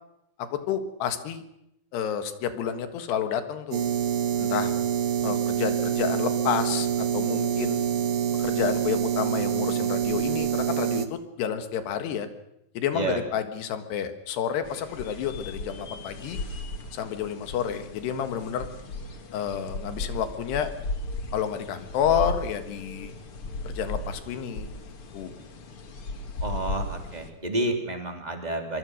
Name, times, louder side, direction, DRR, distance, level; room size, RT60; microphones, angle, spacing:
voice 1, 0.4-1.4 1.9-3.8 4.4-4.7 5.2-7.8 8.4-12.3 12.8-16.4 16.9-18.7 19.3-20.7 21.3-23.1 23.7-24.7 25.1-25.4, left 8 dB, 90° left, 9 dB, 3.7 m, -30 dB
sound 1, 3.7-11.1, right 9 dB, 80° right, 1.3 m, -26 dB
sound 2, 14.6-27.3, left 2 dB, 40° left, 2.3 m, -36 dB
voice 2, 26.4-28.8, right 2 dB, 10° right, 3 dB, 2.7 m, -30 dB
25.0 x 23.5 x 6.5 m, 0.81 s
omnidirectional pair, 4.6 m